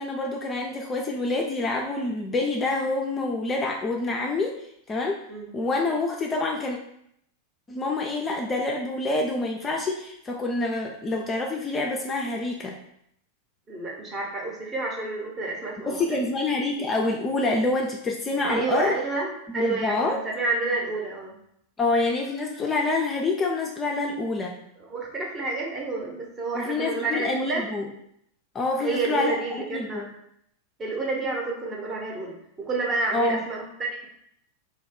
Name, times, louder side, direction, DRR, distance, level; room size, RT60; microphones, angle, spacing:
voice 1, 0.0-4.6 4.9-5.2 5.5-6.8 7.7-12.8 15.9-19.0 19.5-20.2 21.8-24.6 26.5-27.9 28.5-29.4 29.7-30.1 33.1-33.5, left 2 dB, 20° left, 0 dB, 0.4 m, -27 dB
voice 2, 13.7-16.2 18.5-21.3 24.8-27.6 28.8-30.1 30.8-34.1, right 3 dB, 25° right, -1 dB, 0.8 m, -29 dB
2.8 x 2.2 x 3.5 m, 0.73 s
figure-of-eight pair, 90°, 0 cm